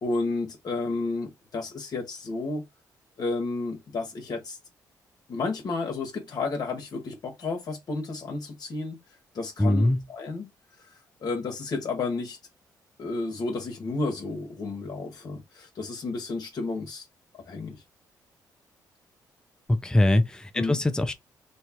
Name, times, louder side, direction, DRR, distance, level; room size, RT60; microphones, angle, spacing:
voice 1, 0.0-2.6 3.2-4.6 5.3-9.0 9.3-10.5 11.2-12.4 13.0-17.0 17.3-17.8 20.5-20.8, left 3 dB, 60° left, 1.3 m, -31 dB
voice 2, 9.6-10.0 19.7-21.1, left 1 dB, 10° left, 0.6 m, -22 dB
3.1 x 2.4 x 4.3 m
cardioid pair, 75°, 8 cm